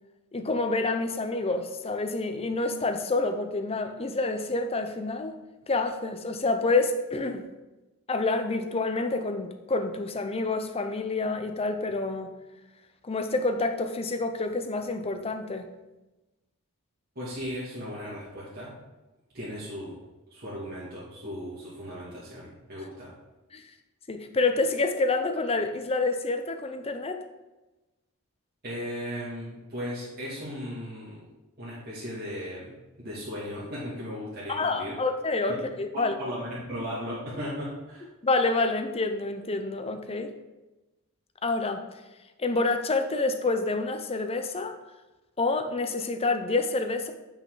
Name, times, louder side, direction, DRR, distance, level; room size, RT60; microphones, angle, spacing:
voice 1, 0.3-5.4 5.7-7.4 8.1-12.3 13.0-15.7 23.5-23.6 24.1-27.2 34.5-36.1 38.2-40.3 41.4-41.8 42.4-44.8 45.4-47.1, left 3 dB, 25° left, 7 dB, 0.7 m, -28 dB
voice 2, 17.2-18.8 19.3-20.0 20.3-23.1 28.6-31.2 31.6-32.8 33.0-35.0 35.5-35.7 35.9-38.1, equal, 45° right, -8 dB, 2.2 m, -36 dB
8.6 x 5.8 x 3.8 m, 1.1 s
head